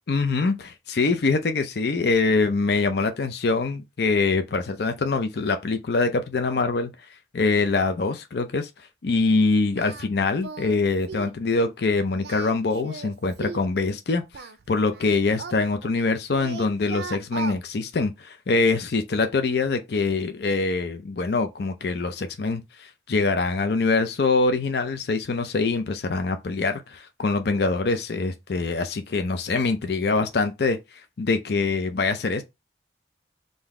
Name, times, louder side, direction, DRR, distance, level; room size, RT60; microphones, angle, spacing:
voice 1, 0.1-6.9 7.3-8.7 9.0-14.4 14.7-30.8 31.2-32.4, left 3 dB, 55° left, 0.5 m, -24 dB
Singing, 9.8-10.1 10.4-10.8 11.1-11.4 12.1-13.7 14.3-16.1 16.4-17.6, right 5 dB, 60° right, 0.4 m, -37 dB
3.8 x 2.6 x 4.7 m
head